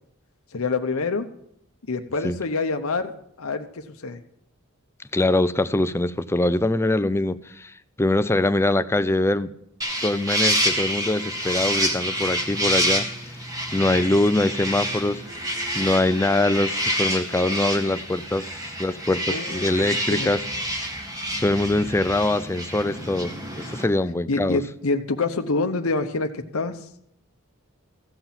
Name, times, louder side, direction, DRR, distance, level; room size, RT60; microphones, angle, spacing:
voice 1, 0.5-1.3 1.9-3.1 3.4-4.2 19.3-20.3 24.3-26.8, left 3 dB, 90° left, 6 dB, 0.9 m, -26 dB
voice 2, 5.1-7.7 8.0-9.5 10.0-13.1 13.7-18.5 18.8-20.4 21.4-23.4 23.7-24.6, left 2 dB, 10° left, 13 dB, 0.4 m, -23 dB
sound 1, 9.8-23.8, equal, 15° right, 2.0 m, -28 dB
15.5 x 5.9 x 7.3 m, 0.71 s
head